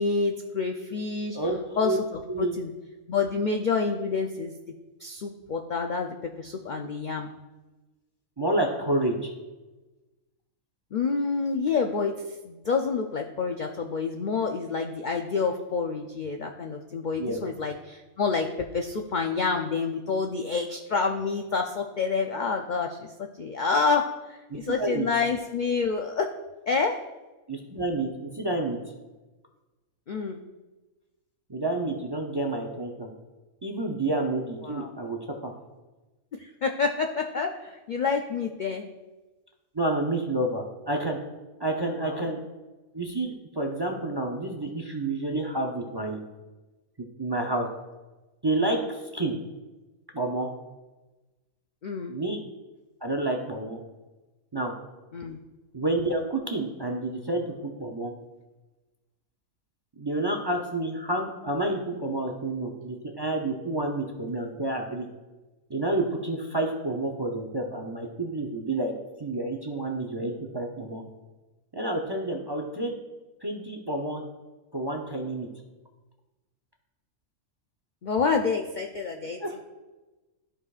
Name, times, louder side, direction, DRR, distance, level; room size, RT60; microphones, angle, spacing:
voice 1, 0.0-1.4 1.8-2.7 3.1-4.5 5.0-7.3 10.9-12.1 12.4-18.5 18.7-23.1 23.4-24.0 24.3-26.3 26.7-27.0 30.1-30.4 34.6-34.9 36.4-38.9 42.0-42.2 51.8-52.1 55.1-55.4 78.0-79.4, left 4 dB, 75° left, 3 dB, 0.4 m, -28 dB
voice 2, 8.4-9.3 17.2-17.4 24.5-25.1 27.5-28.8 31.5-33.1 33.6-35.2 35.4-35.5 39.7-41.2 41.6-42.4 42.9-46.3 47.2-47.7 48.4-49.4 50.1-50.5 52.1-52.4 53.0-53.8 54.5-54.7 55.7-58.1 60.0-65.1 65.7-68.9 69.2-71.0 71.7-72.9 73.4-74.2 74.7-75.5 79.4-79.7, right 2 dB, 30° right, 2 dB, 0.4 m, -29 dB
13.5 x 5.0 x 2.4 m, 1.2 s
omnidirectional pair, 1.5 m